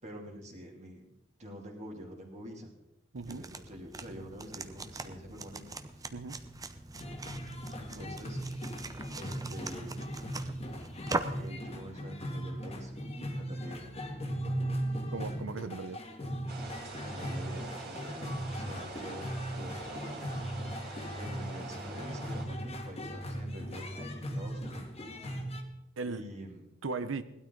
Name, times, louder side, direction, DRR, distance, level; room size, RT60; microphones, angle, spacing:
voice 1, 0.0-1.1 1.4-2.7 3.2-6.1 7.8-8.4 9.1-10.0 11.3-12.9 13.2-13.9 17.0-20.3 21.1-24.9 25.2-25.3 26.1-26.6, equal, 35° right, 2.9 m, -46 dB
voice 2, 3.1-3.5 6.1-6.4 15.1-16.0 26.0-26.2 26.8-27.2, right 3 dB, 75° right, 0.7 m, -37 dB
sound 1, 3.2-11.5, right 3 dB, 20° right, 0.7 m, -41 dB
sound 2, 6.9-25.6, equal, 30° left, 1.8 m, -38 dB
sound 3, 16.5-22.5, right 3 dB, 55° right, 3.4 m, -45 dB
18.5 x 12.5 x 3.9 m
head